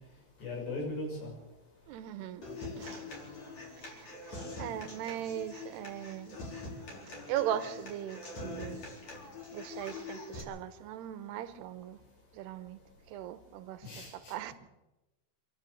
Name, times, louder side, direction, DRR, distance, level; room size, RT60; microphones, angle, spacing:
voice 1, 0.4-1.3 13.8-14.4, left 2 dB, 80° left, 8.7 m, -38 dB
voice 2, 1.9-2.4 2.8-3.0 3.8-6.4 7.3-8.8 9.5-12.0 12.3-12.8 13.1-13.9 14.1-14.5, right 11 dB, 80° right, 3.0 m, -39 dB
Human voice / Acoustic guitar, 2.4-10.4, left 3 dB, 45° left, 5.1 m, -44 dB
26.5 x 12.5 x 8.0 m
omnidirectional pair, 4.9 m